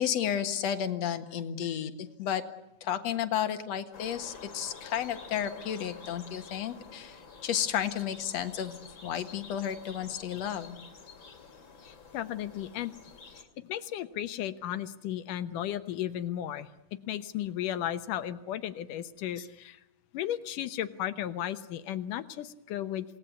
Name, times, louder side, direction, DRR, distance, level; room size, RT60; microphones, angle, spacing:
voice 1, 0.0-2.4 2.8-10.8 19.4-19.5, left 9 dB, 55° left, 9 dB, 2.5 m, -32 dB
sound 1, 3.9-13.4, left 5 dB, 40° left, 3.0 m, -49 dB
voice 2, 11.8-13.0 13.3-13.4 13.7-16.7 17.1-19.8 20.1-23.1, left 11 dB, 75° left, 12 dB, 2.6 m, -34 dB
28.0 x 19.0 x 9.4 m, 0.90 s
omnidirectional pair, 3.8 m